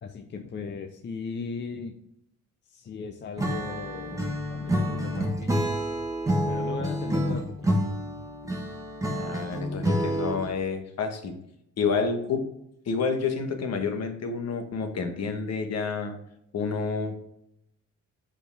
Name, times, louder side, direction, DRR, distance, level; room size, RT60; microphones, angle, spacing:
voice 1, 0.0-2.0 2.7-5.5 6.5-7.9, left 5 dB, 35° left, 6 dB, 0.6 m, -38 dB
Acoustic guitar / Strum, 3.4-10.6, equal, 10° right, 1.2 m, -28 dB
voice 2, 9.1-11.3 11.8-12.4 12.9-16.2 16.5-17.2, left 5 dB, 55° left, 6 dB, 1.2 m, -29 dB
6.6 x 5.0 x 3.4 m, 0.77 s
cardioid pair, 90°, 30 cm